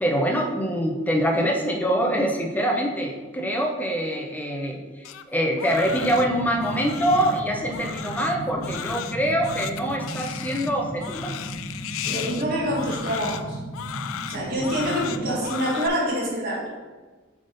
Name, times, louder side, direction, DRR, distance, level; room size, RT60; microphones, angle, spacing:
voice 1, 0.0-11.3, equal, 10° left, 1 dB, 0.7 m, -24 dB
Crying sobbing, 5.0-15.9, left 9 dB, 90° left, 0.4 m, -35 dB
sound 1, 5.8-15.4, right 1 dB, 35° left, 1.0 m, -36 dB
voice 2, 12.0-13.6 14.3-16.7, equal, 50° right, -5 dB, 2.0 m, -26 dB
7.5 x 3.7 x 4.0 m, 1.3 s
head